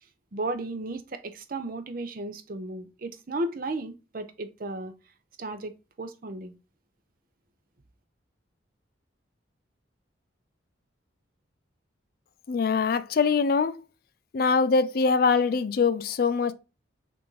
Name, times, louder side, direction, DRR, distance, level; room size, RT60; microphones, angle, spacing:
voice 1, 0.3-4.9 5.4-6.5, right 2 dB, 45° right, 0.6 m, -34 dB
voice 2, 12.5-13.7 14.3-16.5, left 5 dB, 50° left, 0.3 m, -23 dB
5.8 x 2.6 x 3.1 m
head